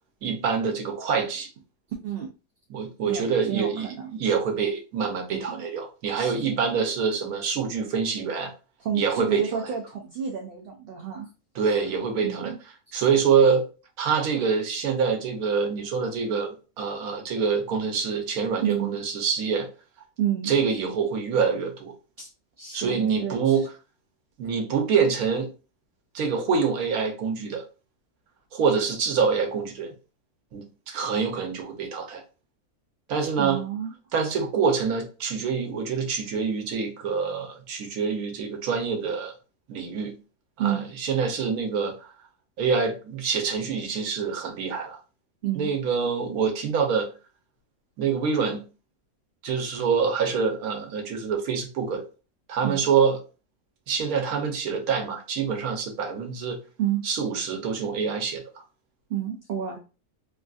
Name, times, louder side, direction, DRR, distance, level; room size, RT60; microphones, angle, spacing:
voice 1, 0.2-1.5 2.7-8.5 9.0-9.7 11.6-12.5 12.9-13.7 14.0-16.5 16.8-19.7 20.4-21.9 22.7-23.6 24.4-25.5 26.1-27.6 28.5-29.9 30.5-32.2 33.1-33.6 34.1-39.3 39.7-40.1 40.6-42.1 42.6-45.0 45.6-47.1 48.0-48.6 49.4-52.0 52.5-53.2 53.9-56.6 57.0-58.4, right 6 dB, 85° right, 1.2 m, -26 dB
voice 2, 3.0-4.1 5.3-5.6 6.1-6.5 8.8-11.3 12.2-12.6 18.6-19.0 20.2-20.5 22.2-22.3 22.6-23.7 33.4-33.9 40.6-40.9 45.4-45.7 52.6-52.8 56.8-57.0 59.1-59.8, right 9 dB, 70° right, 0.5 m, -30 dB
3.3 x 2.5 x 2.3 m
omnidirectional pair, 1.5 m